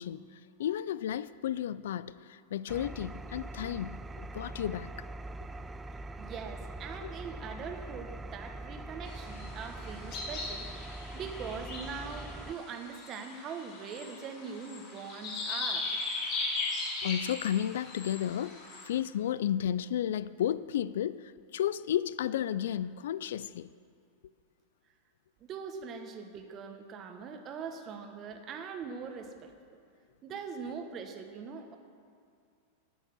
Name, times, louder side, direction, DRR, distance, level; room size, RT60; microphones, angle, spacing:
voice 1, 0.0-5.0 7.0-7.1 17.0-18.6 18.8-23.7, left 10 dB, 80° left, 0.4 m, -33 dB
Engine, 2.7-12.5, right 2 dB, 15° right, 0.4 m, -43 dB
voice 2, 6.2-10.7 11.1-15.9 25.5-29.5 30.2-31.8, right 6 dB, 35° right, 1.2 m, -42 dB
sound 1, 9.0-18.8, left 3 dB, 50° left, 3.9 m, -38 dB
11.0 x 9.0 x 7.8 m
supercardioid pair, 130°, 0 cm